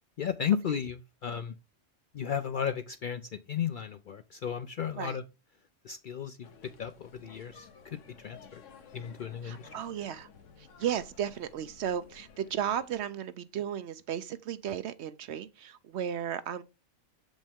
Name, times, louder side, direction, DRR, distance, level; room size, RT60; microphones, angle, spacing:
voice 1, 0.2-1.5 2.1-5.2 5.8-6.5 6.8-8.6 8.9-9.7, left 8 dB, 60° left, 0.5 m, -34 dB
sound 1, 6.4-13.1, left 6 dB, 80° left, 1.3 m, -54 dB
voice 2, 9.4-10.3 10.6-16.6, right 9 dB, 65° right, 0.8 m, -34 dB
7.4 x 5.2 x 3.5 m
omnidirectional pair, 1.3 m